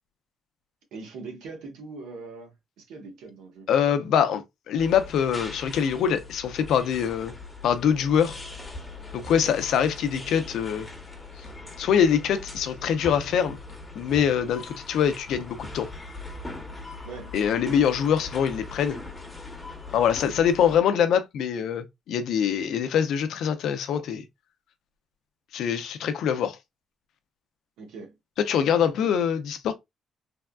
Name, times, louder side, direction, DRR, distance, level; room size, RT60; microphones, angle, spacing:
voice 1, 0.9-3.7 9.4-9.6 17.0-17.8 27.8-28.1 28.8-29.2, right 4 dB, 90° right, 1.1 m, -42 dB
voice 2, 3.7-7.3 7.6-8.4 9.1-10.9 11.4-11.5 11.8-13.6 13.9-15.9 17.3-19.0 19.9-24.2 25.5-26.6 28.4-29.7, left 8 dB, 80° left, 0.5 m, -24 dB
sound 1, 4.8-20.8, left 3 dB, 15° left, 0.9 m, -41 dB
3.4 x 2.3 x 2.3 m
cardioid pair, 90°, 0 cm